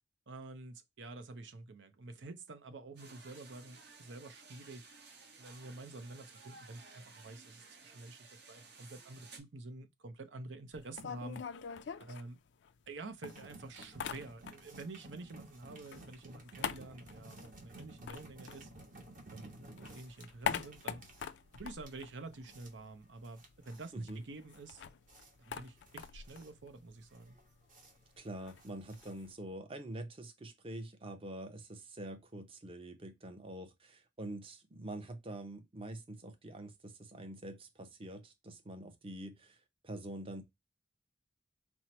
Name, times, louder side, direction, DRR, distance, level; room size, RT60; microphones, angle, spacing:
voice 1, 0.3-4.9 5.4-11.4 12.0-12.4 12.9-18.7 19.3-21.0 21.5-24.8 25.5-27.4, right 3 dB, 80° right, 0.7 m, -49 dB
sound 1, 3.0-9.4, right 4 dB, 65° right, 1.1 m, -56 dB
sound 2, 10.7-12.9 13.2-14.9 15.1-19.3 19.6-22.9 23.2-23.3 23.5-29.3, left 7 dB, 70° left, 0.4 m, -44 dB
sound 3, 13.2-29.5, right 2 dB, 45° right, 1.1 m, -55 dB
voice 2, 28.2-39.6 39.8-40.4, right 1 dB, 30° right, 0.7 m, -45 dB
4.4 x 2.1 x 4.3 m
head